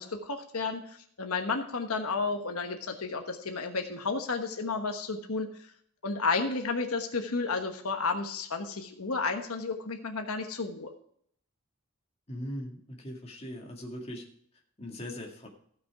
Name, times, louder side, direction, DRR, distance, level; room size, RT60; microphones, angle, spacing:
voice 1, 0.0-5.5 6.0-10.9, left 4 dB, 90° left, 5 dB, 1.2 m, -32 dB
voice 2, 12.3-14.2 14.8-15.5, equal, 30° left, 0 dB, 2.1 m, -40 dB
15.0 x 6.0 x 4.8 m, 0.64 s
head